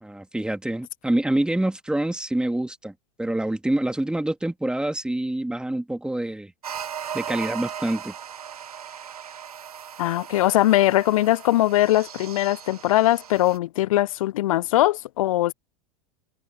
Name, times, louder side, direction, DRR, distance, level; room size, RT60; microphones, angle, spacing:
voice 1, 0.0-2.9 3.2-6.5 7.1-8.1, right 1 dB, 5° right, 2.8 m, -26 dB
sound 1, 6.6-13.6, right 8 dB, 75° right, 1.8 m, -38 dB
voice 2, 10.0-15.5, left 15 dB, 65° left, 0.7 m, -21 dB
figure-of-eight pair, 85°, 19 cm